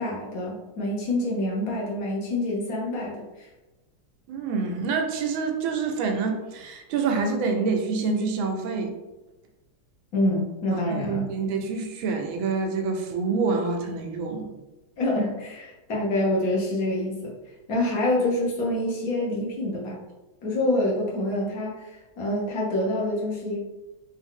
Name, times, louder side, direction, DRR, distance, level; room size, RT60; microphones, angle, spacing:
voice 1, 0.0-3.5 10.1-11.3 15.0-17.3 17.7-20.0 20.4-23.6, left 1 dB, 55° left, -3 dB, 1.2 m, -26 dB
voice 2, 4.3-8.9 10.7-14.5, right 4 dB, 85° right, 4 dB, 1.4 m, -27 dB
3.7 x 2.6 x 3.6 m, 1.1 s
omnidirectional pair, 2.1 m